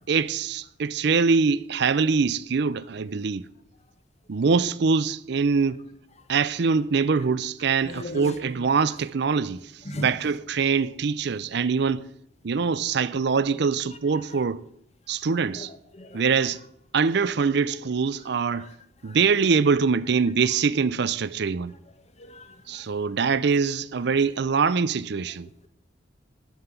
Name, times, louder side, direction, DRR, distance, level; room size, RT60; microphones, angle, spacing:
voice 1, 0.1-3.5 4.3-5.8 6.3-12.0 12.4-14.6 15.1-15.7 16.1-16.6 16.9-18.7 19.0-21.7 22.7-25.5, right 5 dB, 65° right, 0.5 m, -24 dB
voice 2, 7.8-8.4 9.8-10.1 15.5-15.7 15.9-16.2 18.6-18.7 19.0-19.2 22.2-22.9, equal, 35° left, 1.3 m, -37 dB
12.5 x 5.8 x 9.4 m
head